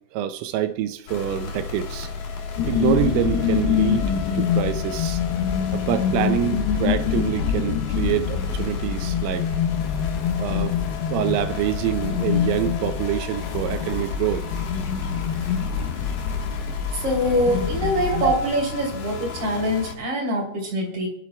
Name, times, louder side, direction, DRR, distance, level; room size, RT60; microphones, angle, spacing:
voice 1, 0.1-2.1 2.7-5.2 5.7-9.5 10.4-10.8 11.1-14.4 17.7-17.8 18.2-18.4, right 11 dB, 80° right, 3.1 m, -26 dB
sound 1, 1.1-20.0, left 5 dB, 70° left, 1.8 m, -34 dB
sound 2, 2.6-18.4, left 8 dB, 85° left, 3.8 m, -25 dB
voice 2, 16.9-21.1, equal, 40° right, 3.9 m, -24 dB
30.0 x 11.5 x 2.4 m
omnidirectional pair, 6.0 m